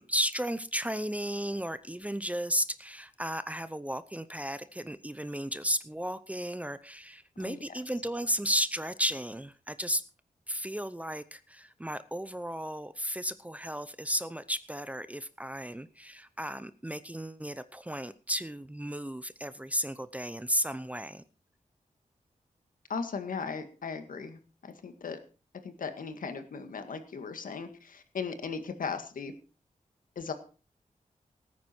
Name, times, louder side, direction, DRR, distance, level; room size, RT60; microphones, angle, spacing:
voice 1, 0.0-10.0 10.5-21.2, equal, 10° right, 14 dB, 0.7 m, -34 dB
voice 2, 22.9-25.2 25.6-29.3 30.2-30.3, left 5 dB, 85° left, 8 dB, 1.9 m, -37 dB
18.0 x 9.7 x 4.5 m, 0.35 s
wide cardioid pair, 120°, 14 cm